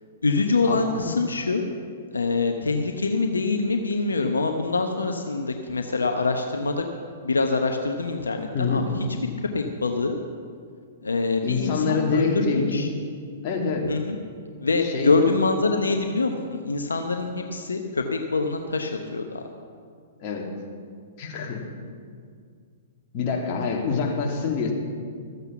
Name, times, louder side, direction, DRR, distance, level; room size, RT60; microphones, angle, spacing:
voice 1, 0.2-1.6 2.1-6.8 7.2-9.1 9.5-10.2 11.0-12.9 13.8-14.2 14.6-19.4, left 3 dB, 90° left, 5 dB, 0.9 m, -25 dB
voice 2, 8.5-8.9 11.4-12.9 13.4-13.9 14.8-15.1 20.2-20.5 21.2-21.7 23.1-24.7, left 5 dB, 40° left, 0 dB, 2.4 m, -26 dB
13.5 x 8.1 x 7.0 m, 2.1 s
hypercardioid pair, 115°, 0 cm